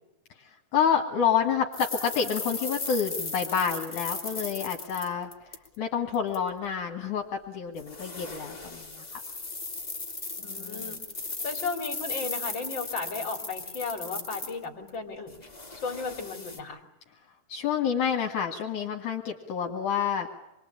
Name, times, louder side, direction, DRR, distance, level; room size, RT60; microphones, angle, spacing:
voice 1, 0.7-5.3 5.8-9.0 10.5-11.0 17.5-20.3, left 7 dB, 65° left, 2 dB, 3.1 m, -28 dB
sound 1, 1.7-5.8 6.1-6.4 7.8-14.9 15.3-16.6, left 3 dB, 10° left, 2.4 m, -37 dB
voice 2, 10.4-11.0 11.4-15.4 15.8-16.8, left 4 dB, 35° left, 5 dB, 3.6 m, -35 dB
27.5 x 22.0 x 8.7 m, 0.91 s
omnidirectional pair, 4.1 m